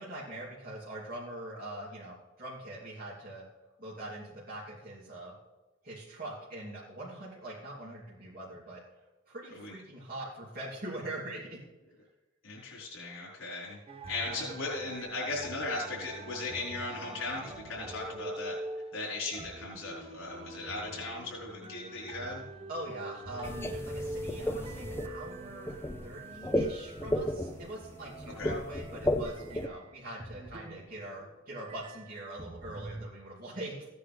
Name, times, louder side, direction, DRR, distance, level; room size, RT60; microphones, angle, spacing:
voice 1, 0.0-3.4 3.8-5.3 5.8-8.8 9.3-11.6 14.3-14.5 22.7-25.7 26.0-33.9, right 1 dB, 45° right, -7 dB, 3.2 m, -42 dB
voice 2, 12.4-13.8 14.1-18.6 18.9-22.4 28.2-28.5, left 2 dB, 85° left, -5 dB, 4.9 m, -37 dB
sound 1, 13.9-31.3 31.6-33.1, right 1 dB, 30° right, 0.9 m, -45 dB
sound 2, 23.4-29.7, left 1 dB, 10° left, 0.6 m, -33 dB
16.0 x 9.7 x 3.5 m, 1.1 s
head